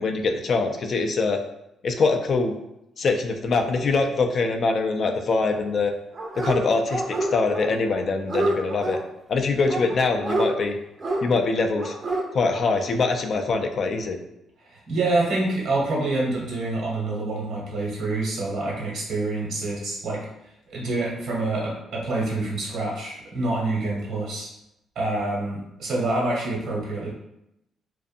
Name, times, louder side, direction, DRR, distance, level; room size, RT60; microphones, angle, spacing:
voice 1, 0.0-1.4 1.8-2.5 3.0-5.9 6.4-9.0 9.3-10.8 11.2-12.0 12.3-14.2, left 3 dB, 50° left, 5 dB, 0.3 m, -23 dB
Dog, 6.1-6.6 6.9-7.7 7.9-9.0 9.7-10.5 11.0-11.2 11.8-12.2 12.5-12.6, right 2 dB, 35° right, 0.5 m, -27 dB
voice 2, 14.7-20.2 20.7-24.5 24.9-27.1, right 2 dB, 75° right, -4 dB, 1.1 m, -26 dB
2.6 x 2.4 x 2.5 m, 0.83 s
cardioid pair, 90°, 0 cm